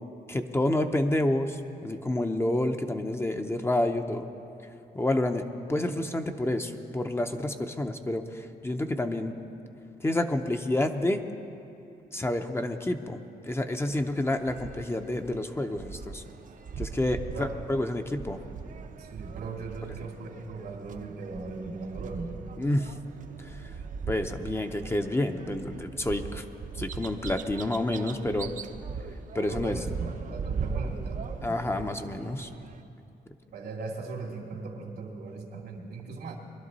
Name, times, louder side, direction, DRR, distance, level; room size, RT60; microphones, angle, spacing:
voice 1, 0.3-4.3 4.9-5.4 5.7-9.3 10.0-11.2 12.1-16.2 16.8-18.4 22.6-22.9 23.4-23.6 24.1-26.4 26.8-28.5 29.3-29.8 31.4-32.5, left 1 dB, 15° left, 6 dB, 0.6 m, -29 dB
sound 1, 13.8-32.8, right 5 dB, 55° right, 0.7 m, -40 dB
voice 2, 19.0-22.3 29.5-31.6 33.5-36.4, right 4 dB, 90° right, -1 dB, 2.4 m, -39 dB
22.0 x 11.5 x 4.0 m, 2.7 s
cardioid pair, 110°, 16 cm